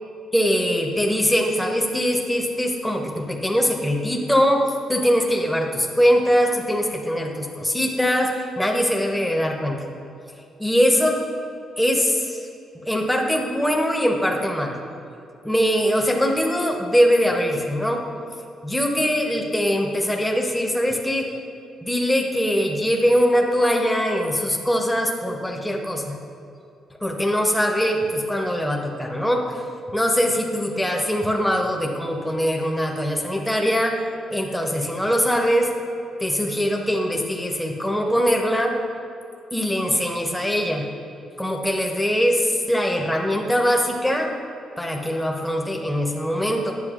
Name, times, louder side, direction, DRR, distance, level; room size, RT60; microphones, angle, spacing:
voice 1, 0.3-9.8 10.6-11.2 11.8-12.5 12.7-14.8 15.4-18.0 18.6-21.3 21.8-26.1 27.0-29.6 29.9-34.0 34.3-35.7 36.2-38.8 39.5-40.9 41.4-44.3 44.8-46.7, equal, 5° left, 0 dB, 0.8 m, -22 dB
9.7 x 7.4 x 2.5 m, 2.6 s
cardioid pair, 90°, 0 cm